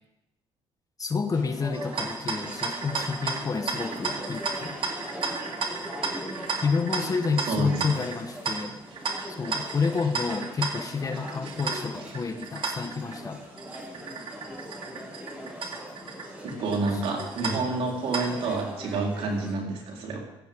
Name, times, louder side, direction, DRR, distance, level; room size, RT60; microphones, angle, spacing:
voice 1, 1.0-4.8 6.6-8.8 9.4-13.4 16.5-17.0, left 4 dB, 35° left, 7 dB, 1.3 m, -29 dB
sound 1, 1.3-19.5, equal, 10° right, 6.2 m, -41 dB
sound 2, 1.7-18.6, right 4 dB, 60° right, 2.4 m, -34 dB
voice 2, 7.5-7.8 16.4-20.2, right 3 dB, 75° right, 0 dB, 4.0 m, -29 dB
18.0 x 14.0 x 3.7 m, 0.94 s
supercardioid pair, 75°, 10 cm